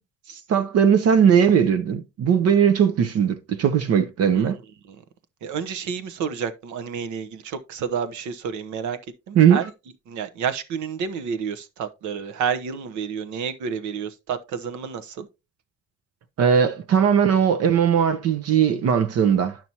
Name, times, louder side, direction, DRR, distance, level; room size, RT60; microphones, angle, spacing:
voice 1, 0.3-4.6 9.4-9.6 16.4-19.6, right 8 dB, 55° right, 0.7 m, -19 dB
voice 2, 5.4-9.0 9.3-9.7 10.1-15.3, right 7 dB, 75° right, 1.0 m, -30 dB
11.0 x 5.9 x 2.9 m
cardioid pair, 175°, 30 cm